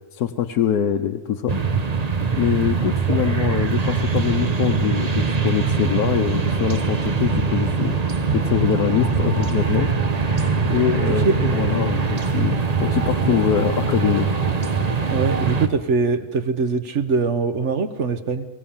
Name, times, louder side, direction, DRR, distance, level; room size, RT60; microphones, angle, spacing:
voice 1, 0.1-1.6 2.3-8.0 8.3-9.9 10.7-14.4, left 9 dB, 80° left, 4 dB, 1.4 m, -23 dB
sound 1, 1.5-15.7, right 5 dB, 30° right, 0.9 m, -22 dB
voice 2, 15.1-18.5, right 4 dB, 50° right, 10 dB, 1.3 m, -22 dB
23.5 x 16.5 x 7.2 m, 1.2 s
omnidirectional pair, 1.6 m